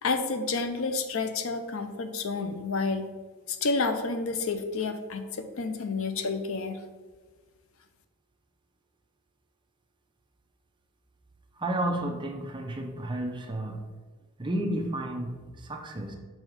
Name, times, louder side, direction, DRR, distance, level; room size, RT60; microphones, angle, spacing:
voice 1, 0.0-3.1 3.5-6.8, left 4 dB, 60° left, 8 dB, 0.5 m, -30 dB
voice 2, 11.5-13.9 14.4-16.2, right 1 dB, 20° right, 3 dB, 0.6 m, -32 dB
6.3 x 3.6 x 5.0 m, 1.4 s
head